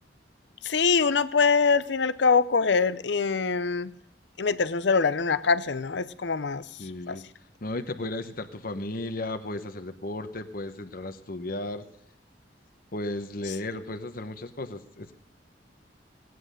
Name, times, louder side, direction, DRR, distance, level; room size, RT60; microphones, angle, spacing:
voice 1, 0.6-3.9 4.4-6.6 7.1-7.2, left 5 dB, 75° left, 15 dB, 0.7 m, -24 dB
voice 2, 6.8-7.2 7.6-11.8 12.9-15.2, left 2 dB, 55° left, 8 dB, 1.0 m, -34 dB
18.0 x 9.5 x 6.6 m, 0.77 s
head